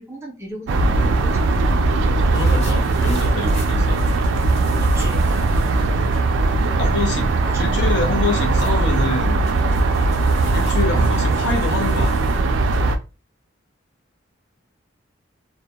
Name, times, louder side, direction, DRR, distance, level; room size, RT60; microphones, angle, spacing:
voice 1, 0.0-1.8 4.8-5.3 7.4-7.7 10.9-11.2, equal, 15° right, 0.5 m, -36 dB
sound 1, 0.7-13.0, right 3 dB, 80° right, 0.3 m, -19 dB
sound 2, 2.2-6.7 7.0-7.1 8.0-12.4, left 1 dB, 35° left, 0.9 m, -40 dB
voice 2, 2.3-4.0 6.8-7.3 7.6-9.5 10.5-12.4, left 3 dB, 65° left, 0.6 m, -26 dB
2.1 x 2.1 x 2.8 m
head